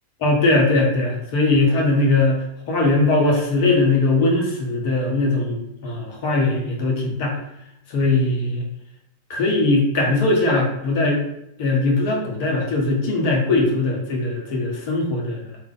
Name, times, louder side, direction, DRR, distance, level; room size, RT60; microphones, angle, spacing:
voice 1, 0.2-2.4 2.7-7.4 7.9-8.6 9.3-11.2 11.6-15.4, left 2 dB, 45° left, -1 dB, 1.3 m, -20 dB
3.5 x 2.9 x 3.8 m, 0.80 s
figure-of-eight pair, 90°, 0 cm